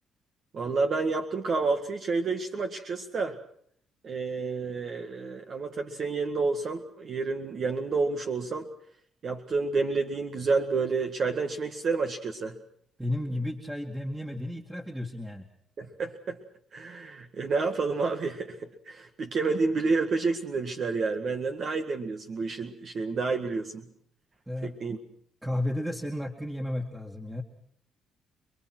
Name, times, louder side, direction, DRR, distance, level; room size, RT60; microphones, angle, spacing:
voice 1, 0.5-3.4 4.0-8.7 9.2-12.6 15.8-16.4 16.7-23.9 24.6-25.0, right 4 dB, 55° right, 5 dB, 1.9 m, -29 dB
voice 2, 13.0-15.5 24.5-24.7 25.4-27.4, left 1 dB, 5° right, 2 dB, 2.3 m, -33 dB
29.0 x 21.5 x 6.2 m, 0.64 s
cardioid pair, 90°, 0 cm